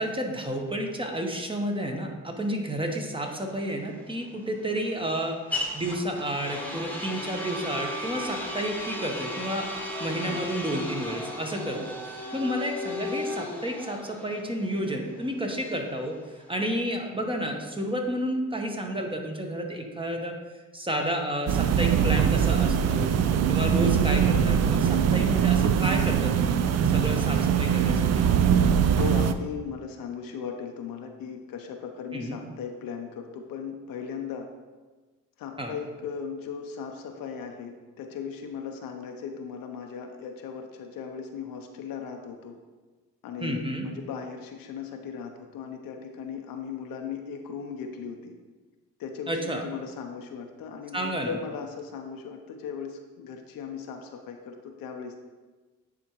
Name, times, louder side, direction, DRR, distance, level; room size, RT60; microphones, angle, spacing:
voice 1, 0.0-9.7 10.0-11.9 12.3-16.2 16.5-20.4 20.7-23.1 23.5-26.6 26.9-28.2 32.1-32.4 35.6-35.7 43.4-43.9 49.3-49.6 50.9-51.4, equal, 15° right, 2 dB, 1.0 m, -31 dB
sound 1, 3.1-17.0, left 2 dB, 5° left, 1.2 m, -36 dB
voice 2, 10.1-10.4 11.7-11.9 23.6-23.9 29.0-34.5 35.4-42.6 43.2-48.4 49.0-55.1, left 6 dB, 80° left, 4 dB, 0.7 m, -37 dB
sound 2, 21.5-29.3, right 8 dB, 50° right, 0.4 m, -22 dB
9.7 x 3.6 x 3.0 m, 1.3 s
cardioid pair, 70°, 34 cm